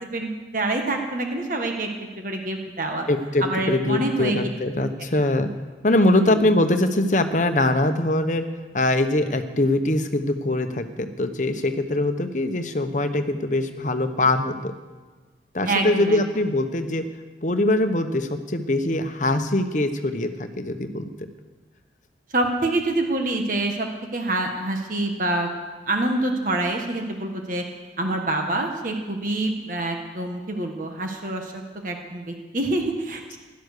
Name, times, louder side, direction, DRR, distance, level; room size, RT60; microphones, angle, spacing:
voice 1, 0.1-3.0 3.4-4.4 6.1-6.5 15.6-16.2 22.3-25.5 25.9-27.6 28.0-33.4, right 2 dB, 45° right, 3 dB, 1.5 m, -26 dB
voice 2, 3.1-5.5 5.8-8.4 8.7-14.7 15.5-17.0 17.4-21.3, left 1 dB, 40° left, 8 dB, 1.0 m, -22 dB
15.5 x 12.0 x 6.7 m, 1.3 s
head